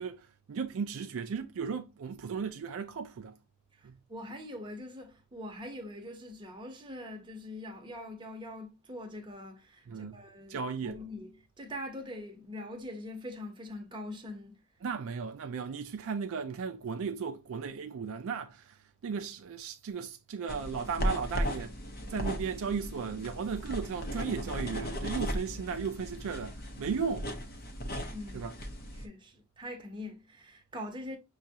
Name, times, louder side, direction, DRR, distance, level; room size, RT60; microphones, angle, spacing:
voice 1, 0.0-3.4 3.8-4.0 9.9-10.2 10.5-11.0 14.8-21.7 22.1-27.3 28.3-28.5, right 6 dB, 65° right, 0.4 m, -36 dB
voice 2, 3.8-14.6 28.1-28.5 28.9-31.2, left 1 dB, 20° right, 0.8 m, -43 dB
sound 1, 20.5-29.1, equal, 45° left, 0.7 m, -36 dB
5.9 x 2.3 x 2.7 m
head